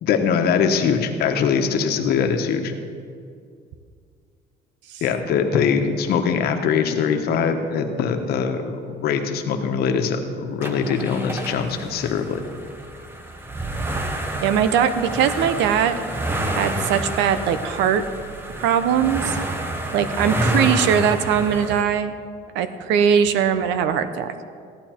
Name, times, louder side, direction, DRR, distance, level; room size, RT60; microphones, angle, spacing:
voice 1, 0.0-2.7 5.0-12.4, left 6 dB, 60° left, 5 dB, 1.2 m, -22 dB
sound 1, 10.6-21.8, right 1 dB, 10° right, 1.0 m, -28 dB
voice 2, 14.4-16.0 16.5-18.0 18.6-19.4 19.9-22.2 22.5-24.3, right 8 dB, 85° right, 11 dB, 0.9 m, -20 dB
15.0 x 11.5 x 4.5 m, 2.3 s
cardioid pair, 160°, 18 cm